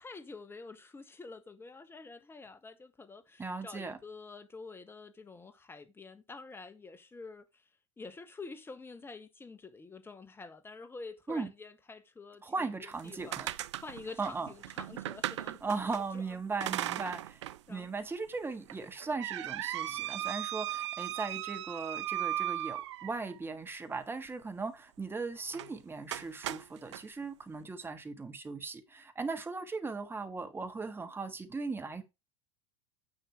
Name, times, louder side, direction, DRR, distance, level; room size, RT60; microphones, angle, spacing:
voice 1, 0.0-7.7 8.0-12.7 13.0-13.5 13.8-15.8 16.1-16.6 17.7-17.9, left 3 dB, 15° left, 1.3 m, -48 dB
voice 2, 3.4-4.0 11.3-11.5 12.4-13.5 14.2-14.5 15.6-17.4 17.7-32.0, right 4 dB, 15° right, 1.6 m, -38 dB
sound 1, 12.9-16.0 16.6-17.6 18.0-18.1 18.7-23.4 25.5-25.7 26.1-27.0, right 13 dB, 70° right, 0.5 m, -37 dB
9.8 x 6.4 x 3.4 m
hypercardioid pair, 85°, 15 cm